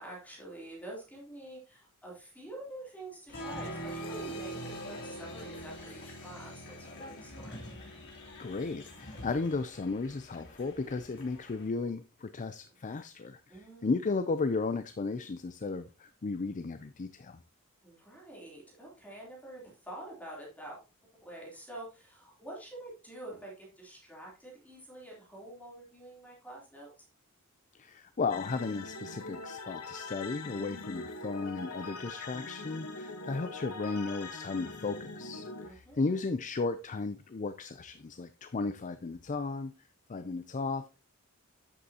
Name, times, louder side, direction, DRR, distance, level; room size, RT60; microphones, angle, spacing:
voice 1, 0.0-7.6 13.5-13.9 17.8-20.8 21.2-27.1 31.9-32.2 35.6-36.1, right 1 dB, 5° left, 3.2 m, -47 dB
Applause, 3.3-11.7, equal, 55° left, 3.3 m, -44 dB
voice 2, 8.4-17.4 27.7-39.7 40.1-41.0, left 3 dB, 35° left, 0.5 m, -35 dB
sound 1, 28.3-35.7, left 3 dB, 85° left, 1.2 m, -42 dB
9.7 x 7.9 x 2.8 m
head